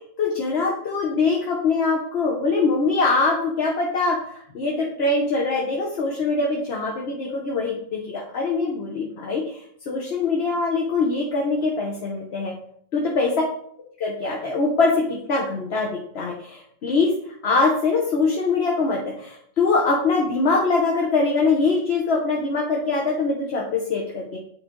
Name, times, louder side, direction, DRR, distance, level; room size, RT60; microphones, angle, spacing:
voice 1, 0.2-12.5 12.9-13.3 14.0-15.9 16.1-24.4, left 3 dB, 50° left, -2 dB, 1.0 m, -23 dB
8.4 x 3.3 x 3.7 m, 0.65 s
omnidirectional pair, 1.6 m